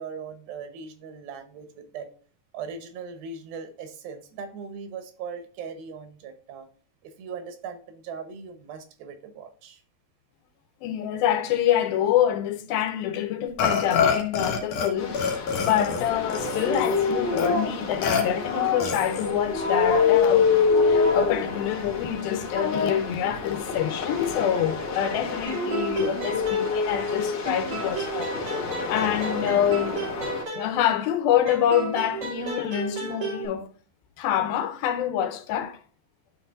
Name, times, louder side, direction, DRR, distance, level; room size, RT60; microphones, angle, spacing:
voice 1, 0.0-2.1 2.5-6.7 7.0-9.8, right 6 dB, 85° right, 2.9 m, -39 dB
voice 2, 10.8-20.5 20.9-28.3 28.9-30.0 30.5-33.7 34.2-35.8, left 10 dB, 85° left, 2.7 m, -26 dB
Burping eructation, 13.6-14.9 15.1-17.0 17.4-17.5 18.0-18.2 18.8-19.3, left 6 dB, 65° left, 2.5 m, -26 dB
sound 1, 15.0-30.4, left 5 dB, 50° left, 2.4 m, -26 dB
sound 2, 25.5-27.1 27.5-31.1 31.5-33.5, right 3 dB, 40° right, 3.3 m, -33 dB
12.0 x 4.5 x 2.5 m
omnidirectional pair, 4.2 m